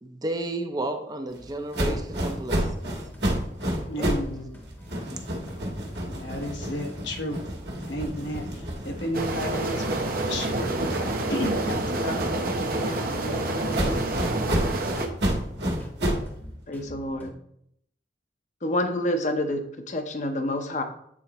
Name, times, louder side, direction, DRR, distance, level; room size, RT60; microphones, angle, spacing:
voice 1, 0.0-2.9 4.0-4.2, right 1 dB, 20° right, 6 dB, 0.5 m, -32 dB
sound 1, 1.4-17.3, equal, 10° left, 0.9 m, -48 dB
sound 2, 1.7-4.3 4.6-9.4 9.8-13.2 13.7-16.3, equal, 70° right, 1.5 m, -30 dB
voice 2, 3.9-4.5 6.1-7.4 7.9-14.8, left 1 dB, 85° left, 2 dB, 1.1 m, -34 dB
sound 3, 9.1-15.1, right 2 dB, 55° right, 0.7 m, -28 dB
voice 3, 16.7-17.3 18.6-20.8, left 1 dB, 40° left, 6 dB, 0.7 m, -28 dB
8.4 x 4.0 x 2.9 m, 0.73 s
head